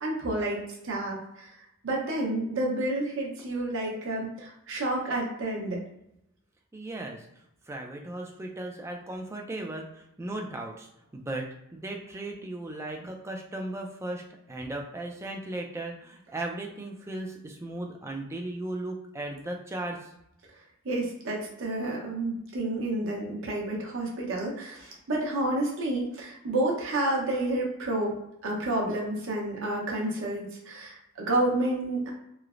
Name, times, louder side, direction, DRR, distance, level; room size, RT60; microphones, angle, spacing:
voice 1, 0.0-1.6 1.8-5.8 20.8-28.1 28.4-32.1, right 1 dB, 60° right, -2 dB, 0.7 m, -30 dB
voice 2, 6.7-7.3 7.7-20.0, right 2 dB, 10° right, 1 dB, 0.3 m, -36 dB
3.1 x 2.0 x 2.4 m, 0.81 s
head